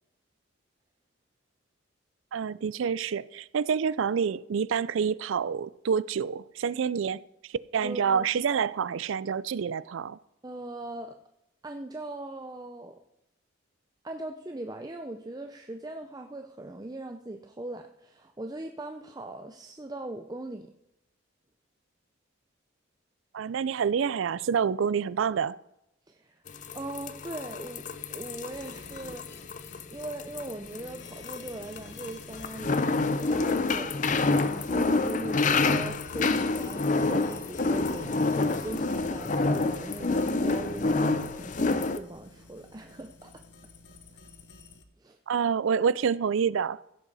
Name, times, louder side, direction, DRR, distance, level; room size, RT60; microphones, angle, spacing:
voice 1, 2.3-7.2 7.7-10.2 23.3-25.5 45.3-46.8, right 6 dB, 75° right, 0.4 m, -27 dB
voice 2, 7.8-8.3 10.4-11.2 11.6-13.0 14.0-20.7 26.1-26.4 26.7-29.4 29.9-43.3 45.0-45.2, right 2 dB, 20° right, 0.5 m, -40 dB
sound 1, 26.5-42.0, left 3 dB, 40° left, 0.5 m, -28 dB
sound 2, 28.5-44.8, left 3 dB, 60° left, 1.3 m, -51 dB
15.5 x 8.1 x 4.1 m
head